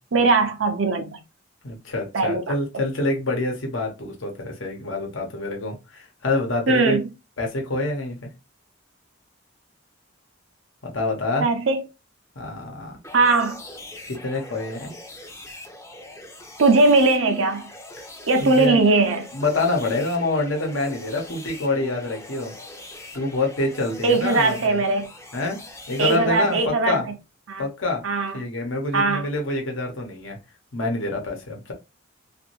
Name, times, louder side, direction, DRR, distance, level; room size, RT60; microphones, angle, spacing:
voice 1, 0.1-1.2 2.1-2.4 6.7-7.1 11.4-11.8 13.1-13.6 16.6-17.7 18.3-19.3 24.0-25.1 26.0-27.0 27.5-27.7 28.0-28.4 28.9-29.3, right 3 dB, 75° right, 0.6 m, -20 dB
voice 2, 1.6-7.0 7.4-8.3 10.8-11.5 12.4-13.0 14.1-14.9 18.0-18.1 18.4-18.8 19.3-22.5 23.1-24.8 25.3-25.6 25.9-27.1 27.6-28.0 28.3-30.4 30.7-31.7, left 2 dB, 75° left, 1.0 m, -26 dB
sound 1, 13.0-26.6, left 2 dB, 15° left, 0.5 m, -42 dB
2.6 x 2.5 x 2.9 m
head